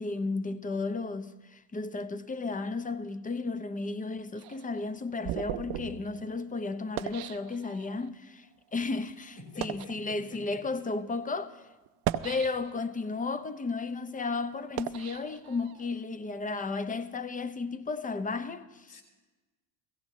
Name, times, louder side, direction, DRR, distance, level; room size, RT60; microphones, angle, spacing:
voice 1, 0.0-8.5 8.7-11.6 12.2-18.9, left 3 dB, 20° left, 0.7 m, -34 dB
sound 1, 4.4-8.1 8.8-8.9 9.4-10.0 10.8-10.9 11.9-13.0 13.5-16.0, right 13 dB, 55° right, 0.6 m, -38 dB
voice 2, 9.4-10.7 18.9-19.0, left 3 dB, 40° left, 4.7 m, -47 dB
16.5 x 16.0 x 3.1 m
hypercardioid pair, 80°, 44 cm